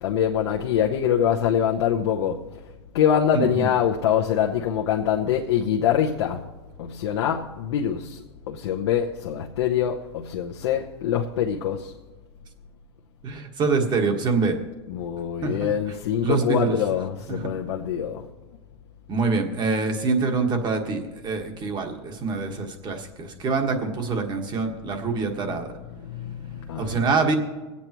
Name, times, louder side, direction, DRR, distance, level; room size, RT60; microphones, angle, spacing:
voice 1, 0.0-2.5 2.9-6.5 6.8-11.9 14.9-18.3 25.4-27.1, left 9 dB, 75° left, 0.9 m, -24 dB
voice 2, 3.3-3.7 13.2-14.6 15.4-15.7 16.2-16.8 17.3-17.4 19.1-25.7 26.8-27.3, right 4 dB, 30° right, 1.6 m, -25 dB
24.5 x 8.4 x 3.0 m
hypercardioid pair, 115°, 14 cm